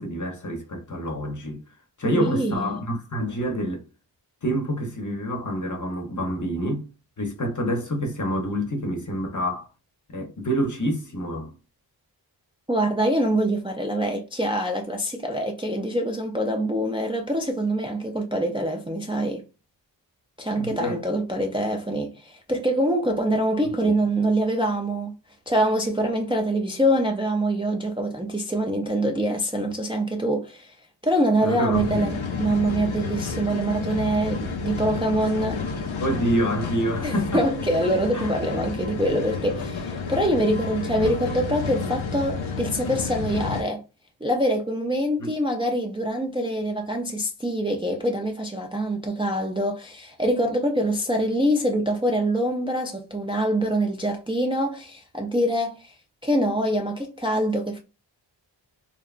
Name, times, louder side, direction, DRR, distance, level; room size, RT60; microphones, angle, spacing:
voice 1, 0.0-1.6 2.0-3.9 4.4-6.9 7.2-9.7 10.1-11.5 20.6-21.0 23.8-23.9 31.4-32.2 36.0-37.4 38.1-38.6 45.2-45.3, equal, 40° left, 0.7 m, -27 dB
voice 2, 2.0-2.6 12.7-19.4 20.4-25.1 25.5-30.7 31.0-35.7 37.0-43.8 44.2-55.9 56.2-57.8, right 1 dB, 10° right, 0.4 m, -25 dB
sound 1, 31.7-43.6, left 4 dB, 85° left, 0.6 m, -30 dB
2.8 x 2.1 x 2.4 m
wide cardioid pair, 55°, 46 cm